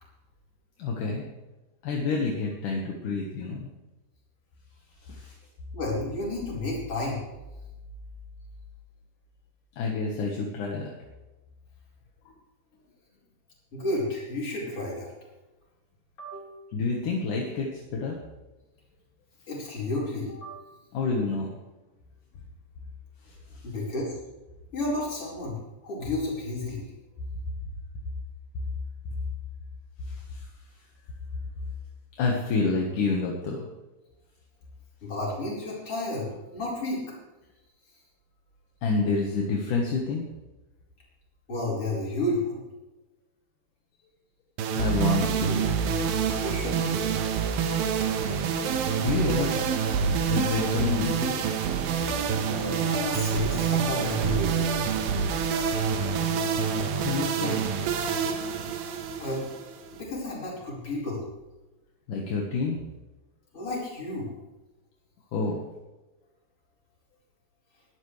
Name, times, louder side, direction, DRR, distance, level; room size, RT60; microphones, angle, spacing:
voice 1, 0.8-1.3 1.8-3.7 5.0-5.3 9.8-10.9 12.3-12.4 16.7-18.2 20.9-21.5 23.2-23.7 30.0-30.5 32.2-33.7 38.8-40.2 44.7-45.8 49.0-49.9 50.2-51.4 57.0-57.6 62.1-62.8 65.3-65.6, left 4 dB, 60° left, -1 dB, 2.5 m, -28 dB
voice 2, 5.7-7.2 13.7-15.1 16.2-16.6 19.5-20.6 23.6-24.1 24.7-26.8 35.0-37.2 41.5-42.6 46.4-47.2 52.2-54.9 59.2-59.4 59.9-61.2 63.5-64.3, left 2 dB, 30° left, -4 dB, 5.3 m, -32 dB
sound 1, 44.6-60.0, right 6 dB, 70° right, 2.6 m, -27 dB
20.5 x 12.5 x 3.3 m, 1.1 s
omnidirectional pair, 5.0 m